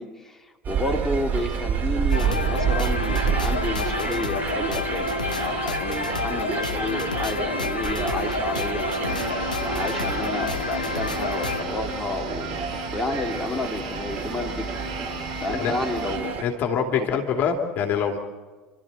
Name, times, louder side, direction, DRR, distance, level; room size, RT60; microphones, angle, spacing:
voice 1, 0.0-12.6 12.9-14.7 15.4-16.3 17.0-17.2, left 2 dB, 10° left, 1 dB, 2.5 m, -31 dB
sound 1, 0.6-16.4, right 7 dB, 40° right, 2.9 m, -29 dB
sound 2, 2.1-11.6, left 4 dB, 90° left, 0.8 m, -29 dB
sound 3, 9.1-16.2, equal, 80° right, 5.1 m, -37 dB
voice 2, 16.4-18.2, left 7 dB, 45° left, 4 dB, 2.6 m, -24 dB
29.5 x 13.0 x 7.6 m, 1.3 s
figure-of-eight pair, 70°, 4 cm